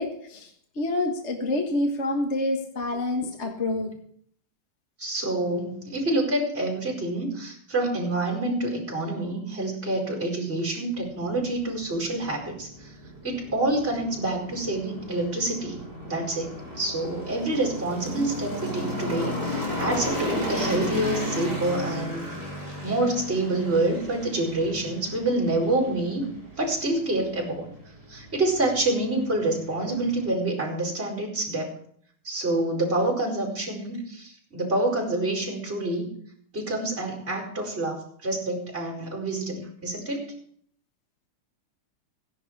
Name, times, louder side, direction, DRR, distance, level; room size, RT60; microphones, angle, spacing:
voice 1, 0.0-3.9, left 2 dB, 35° left, 3 dB, 1.7 m, -27 dB
voice 2, 5.0-12.9 13.2-22.3 22.8-26.2 26.6-27.7 28.1-31.7 32.2-36.1 36.5-40.3, right 2 dB, 25° right, -2 dB, 5.1 m, -27 dB
sound 1, 11.0-30.3, left 1 dB, 20° left, 4.5 m, -35 dB
17.0 x 10.5 x 4.8 m, 0.63 s
omnidirectional pair, 2.4 m